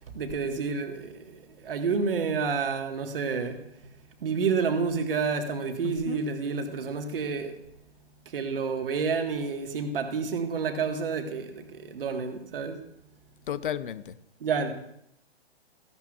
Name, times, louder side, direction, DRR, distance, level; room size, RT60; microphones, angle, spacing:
voice 1, 0.1-3.9 4.2-7.6 8.3-12.8 14.4-14.7, right 5 dB, 60° right, 1.7 m, -29 dB
voice 2, 5.8-6.2 13.5-14.2, left 9 dB, 55° left, 0.7 m, -33 dB
15.0 x 11.5 x 2.4 m
figure-of-eight pair, 125°, 32 cm